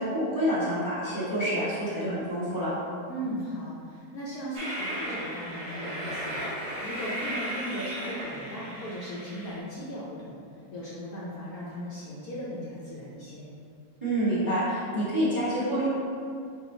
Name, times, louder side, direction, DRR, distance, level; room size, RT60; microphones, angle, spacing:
voice 1, 0.0-2.7 14.0-15.9, equal, 15° right, -10 dB, 1.1 m, -27 dB
voice 2, 3.1-10.4 10.7-13.5, equal, 65° left, -7 dB, 1.0 m, -37 dB
Train, 4.5-9.6, right 1 dB, 40° right, 0.5 m, -35 dB
4.7 x 2.4 x 4.3 m, 2.3 s
omnidirectional pair, 1.9 m